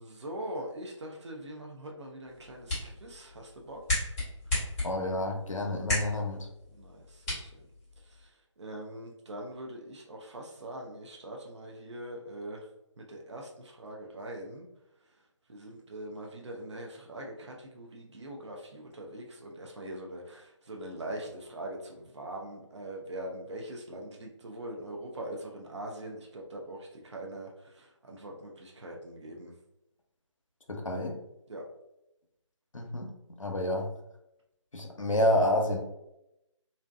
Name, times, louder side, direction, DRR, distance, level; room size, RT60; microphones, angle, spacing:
voice 1, 0.0-4.1 6.8-7.5 8.1-8.3 8.6-12.7 13.0-14.7 15.5-29.5 31.5-31.6, right 1 dB, 65° right, 0 dB, 0.5 m, -42 dB
Finger Snap, 2.3-8.3, left 2 dB, 10° left, 0.8 m, -36 dB
voice 2, 4.8-6.5 30.7-31.2 32.7-33.1 33.4-33.9 34.7-35.8, left 1 dB, 90° left, 2 dB, 0.6 m, -29 dB
2.6 x 2.1 x 2.3 m, 0.85 s
figure-of-eight pair, 155°, 16 cm